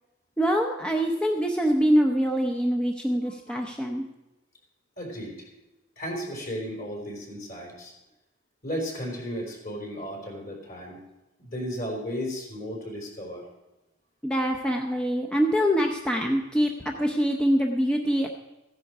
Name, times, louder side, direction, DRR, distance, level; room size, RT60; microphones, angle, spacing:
voice 1, 0.4-4.0 14.2-18.3, equal, 5° left, 2 dB, 0.7 m, -24 dB
voice 2, 5.0-5.4 6.0-7.9 8.6-11.0 11.4-13.4, equal, 50° left, -1 dB, 4.2 m, -34 dB
15.5 x 10.5 x 4.7 m, 1.0 s
head